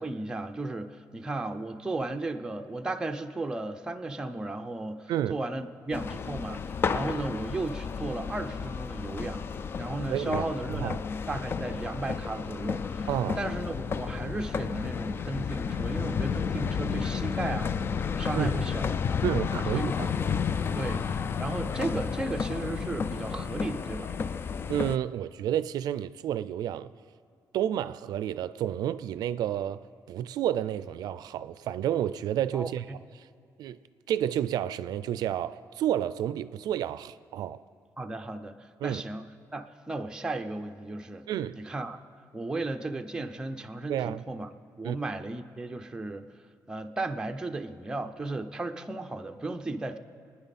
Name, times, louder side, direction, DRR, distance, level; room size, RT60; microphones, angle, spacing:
voice 1, 0.0-9.5 9.8-11.0 11.3-13.1 13.4-17.7 18.2-19.2 19.7-20.2 20.7-21.1 21.4-24.1 32.5-33.0 38.0-39.2 39.5-41.2 41.6-42.0 42.3-44.5 44.8-46.3 46.7-50.0, right 2 dB, 10° right, 0.6 m, -35 dB
sound 1, 5.9-25.0, left 6 dB, 35° left, 0.3 m, -32 dB
voice 2, 10.1-10.4 10.8-11.0 13.1-13.4 18.3-18.5 19.2-20.1 24.7-26.9 27.5-32.9 33.2-33.3 33.6-33.8 34.1-37.6 38.8-39.0 41.3-41.6 43.9-44.2 44.8-45.0, right 11 dB, 85° right, 0.4 m, -30 dB
26.0 x 9.8 x 4.1 m
cardioid pair, 160°, 7 cm